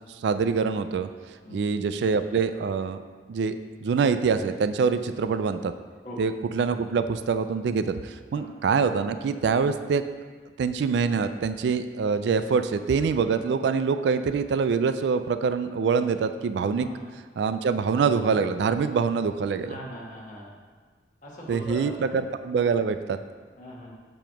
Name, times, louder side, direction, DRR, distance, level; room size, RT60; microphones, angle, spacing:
voice 1, 0.2-1.1 1.5-3.0 3.3-5.7 6.2-10.0 10.6-16.9 17.4-19.7 21.5-23.2, right 5 dB, 70° right, 10 dB, 0.3 m, -25 dB
voice 2, 19.7-20.5 21.2-22.1 23.6-23.9, equal, 45° left, -3 dB, 1.3 m, -40 dB
6.8 x 3.0 x 5.8 m, 1.5 s
head